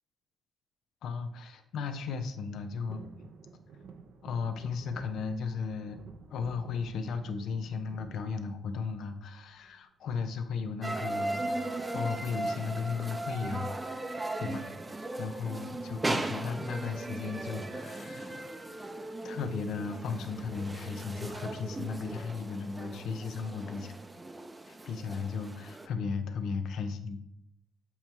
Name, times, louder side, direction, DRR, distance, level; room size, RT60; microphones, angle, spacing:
voice 1, 1.0-3.1 4.2-6.0 6.3-11.5 11.7-14.7 15.2-18.4 19.2-23.9 24.7-27.2, left 5 dB, 75° left, 8 dB, 0.6 m, -35 dB
sound 1, 2.9-9.1 9.5-10.1 11.4-11.8 12.0-12.1 12.4-12.7 13.6-14.5 15.0-15.1, right 5 dB, 70° right, 0.6 m, -52 dB
sound 2, 10.8-25.9, right 2 dB, 20° right, 0.6 m, -37 dB
7.0 x 3.0 x 4.6 m, 0.76 s
cardioid pair, 90°, 0 cm